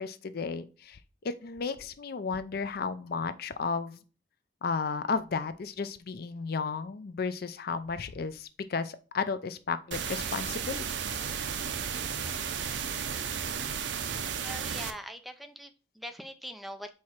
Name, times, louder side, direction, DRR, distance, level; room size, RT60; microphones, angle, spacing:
voice 1, 0.0-4.0 4.6-11.4, left 5 dB, 55° left, 13 dB, 0.5 m, -34 dB
sound 1, 9.9-14.9, right 7 dB, 75° right, 0.6 m, -34 dB
voice 2, 14.4-16.9, equal, ahead, 7 dB, 0.5 m, -42 dB
4.7 x 4.3 x 5.8 m, 0.36 s
head